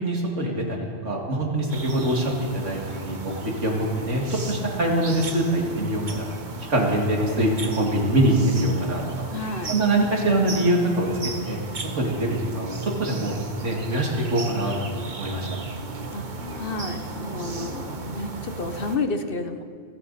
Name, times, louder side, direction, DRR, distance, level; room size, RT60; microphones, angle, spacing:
voice 1, 0.0-3.3 3.6-6.3 6.7-9.0 9.7-11.1 11.4-11.6 12.0-13.4 13.6-15.5, right 1 dB, 85° right, -1 dB, 2.8 m, -24 dB
sound 1, 1.7-19.0, right 3 dB, 45° right, 1.2 m, -35 dB
voice 2, 9.3-9.8 16.1-16.3 16.5-19.6, left 3 dB, 50° left, 7 dB, 1.1 m, -30 dB
30.0 x 10.5 x 4.2 m, 2.1 s
omnidirectional pair, 1.2 m